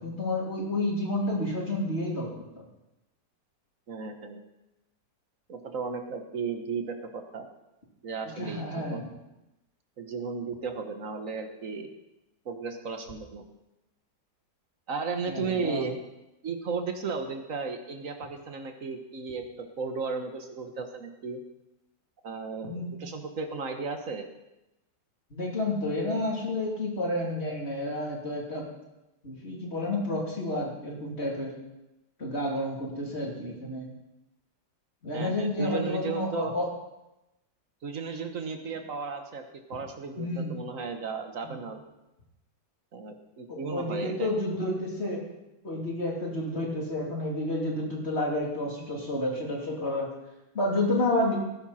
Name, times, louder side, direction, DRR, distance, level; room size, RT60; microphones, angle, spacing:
voice 1, 0.0-2.6 8.4-9.1 15.3-15.9 22.7-23.0 25.3-28.7 29.2-31.5 32.2-33.9 35.0-36.7 40.2-40.6 41.4-41.6 43.5-45.2 45.6-50.1 50.5-51.4, left 1 dB, 35° left, -2 dB, 3.6 m, -30 dB
voice 2, 3.9-4.4 5.5-7.5 8.0-9.0 10.0-11.9 12.4-13.5 14.9-16.0 16.4-21.4 22.2-24.3 35.1-36.5 37.8-39.4 39.7-41.8 42.9-44.3, right 5 dB, 50° right, 6 dB, 1.7 m, -35 dB
19.0 x 11.0 x 4.4 m, 0.94 s
omnidirectional pair, 1.9 m